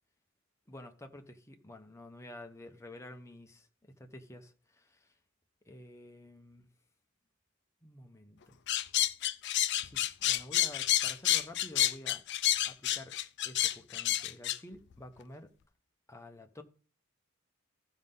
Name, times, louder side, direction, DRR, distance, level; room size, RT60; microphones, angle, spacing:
voice 1, 0.7-3.7 4.0-5.1 5.7-6.7 7.8-8.6 9.8-12.2 12.6-13.2 13.4-15.5 16.1-16.6, left 1 dB, 15° left, 0.9 m, -50 dB
sound 1, 8.7-14.6, left 12 dB, 55° left, 0.5 m, -29 dB
14.5 x 5.4 x 3.8 m
head